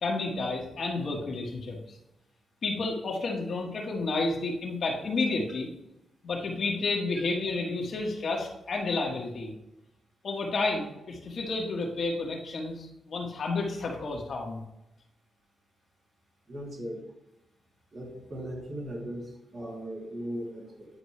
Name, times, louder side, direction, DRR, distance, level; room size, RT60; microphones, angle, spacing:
voice 1, 0.0-2.0 2.6-5.7 6.2-9.5 10.2-14.6, left 3 dB, 60° left, 0 dB, 1.5 m, -31 dB
voice 2, 16.5-17.0 17.9-20.9, equal, 55° right, -3 dB, 2.7 m, -38 dB
9.8 x 4.4 x 3.3 m, 0.89 s
cardioid pair, 60°, 0 cm